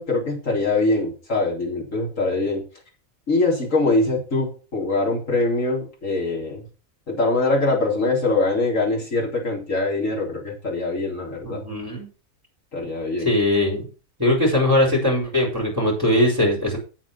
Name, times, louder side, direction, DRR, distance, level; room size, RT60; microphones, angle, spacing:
voice 1, 0.0-2.6 3.3-6.7 7.1-11.6 12.7-13.3, left 2 dB, 70° left, -2 dB, 4.2 m, -23 dB
voice 2, 11.4-12.1 13.2-13.9 14.2-16.8, left 1 dB, 15° right, -1 dB, 4.4 m, -20 dB
8.6 x 7.6 x 5.9 m, 0.36 s
omnidirectional pair, 1.4 m